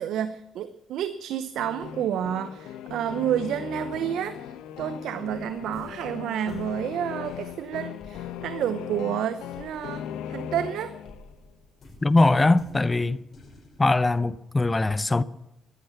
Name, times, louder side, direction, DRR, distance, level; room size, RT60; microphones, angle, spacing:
voice 1, 0.0-10.0 10.3-10.9, right 10 dB, 75° right, 0.7 m, -30 dB
sound 1, 1.6-11.4, left 9 dB, 80° left, 0.9 m, -38 dB
sound 2, 5.5-10.7 11.0-13.8, left 2 dB, 55° left, 4.8 m, -52 dB
voice 2, 12.0-13.2 13.8-15.2, left 2 dB, 25° left, 0.8 m, -21 dB
13.5 x 12.0 x 7.1 m
supercardioid pair, 55°, 0 cm